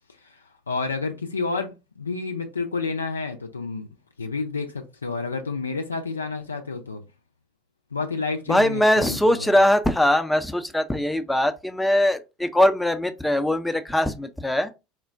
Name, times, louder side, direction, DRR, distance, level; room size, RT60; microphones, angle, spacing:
voice 1, 0.2-3.9 4.2-7.0 7.9-9.5, left 4 dB, 85° left, 0.4 m, -30 dB
voice 2, 8.5-14.7, left 1 dB, 5° left, 0.5 m, -21 dB
4.3 x 2.1 x 2.5 m
figure-of-eight pair, 75°, 0 cm